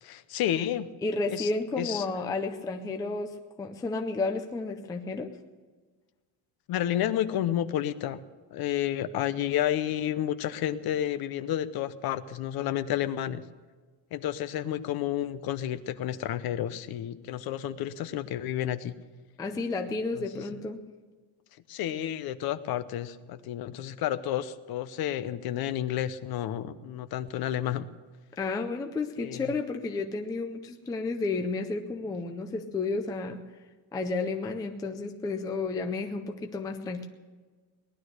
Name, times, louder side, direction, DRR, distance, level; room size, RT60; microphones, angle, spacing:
voice 1, 0.0-0.9 1.3-1.5 1.8-2.1 6.7-8.2 8.5-13.4 14.1-18.9 20.2-20.3 21.7-27.9 29.2-29.5, left 11 dB, 50° left, 13 dB, 0.8 m, -31 dB
voice 2, 1.0-5.3 19.4-20.8 28.3-33.4 33.9-37.1, left 3 dB, 10° left, 5 dB, 0.4 m, -32 dB
19.0 x 11.5 x 6.5 m, 1.4 s
cardioid pair, 180°, 49 cm